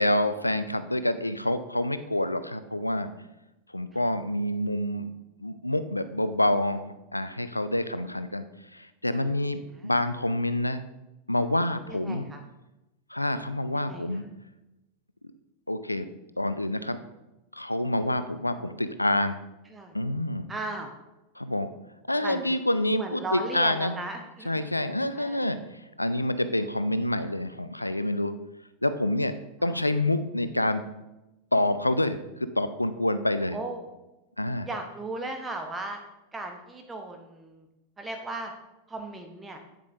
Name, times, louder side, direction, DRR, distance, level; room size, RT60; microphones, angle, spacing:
voice 1, 0.0-3.1 3.7-5.1 5.4-8.4 8.7-10.8 11.3-12.3 13.1-14.2 15.7-16.1 16.4-17.0 17.5-19.4 19.9-20.5 21.4-21.7 22.1-24.0 24.4-25.6 26.0-28.3 28.8-29.3 29.6-30.8 31.5-32.2 32.6-33.6 34.4-34.7, left 1 dB, 85° left, 12 dB, 0.4 m, -27 dB
voice 2, 11.9-12.4 13.7-14.1 19.7-19.9 20.5-20.9 22.2-22.6 22.9-24.6 25.1-25.4 29.6-29.8 33.5-33.9 34.6-36.0 36.3-37.7 38.0-38.5 38.9-39.6, right 2 dB, 15° right, 4 dB, 0.8 m, -36 dB
9.0 x 8.5 x 2.5 m, 0.98 s
figure-of-eight pair, 90°, 0 cm